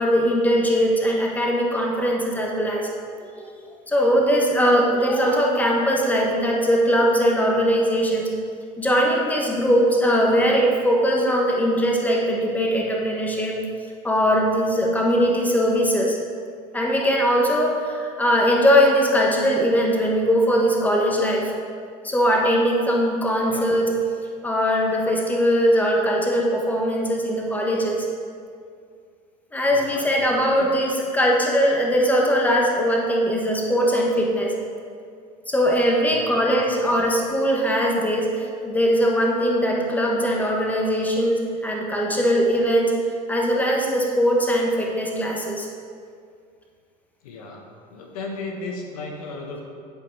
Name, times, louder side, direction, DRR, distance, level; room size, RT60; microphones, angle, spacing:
voice 1, 0.0-2.9 3.9-8.3 8.8-13.6 14.0-16.2 16.7-21.5 22.0-23.9 24.4-28.1 29.5-34.5 35.5-42.9 43.3-45.7, equal, 10° left, -1 dB, 1.3 m, -20 dB
voice 2, 29.7-30.7 36.1-36.4 47.2-47.6 47.9-49.6, left 3 dB, 90° left, 1 dB, 1.2 m, -35 dB
11.0 x 4.5 x 4.1 m, 2.3 s
supercardioid pair, 100°, 18 cm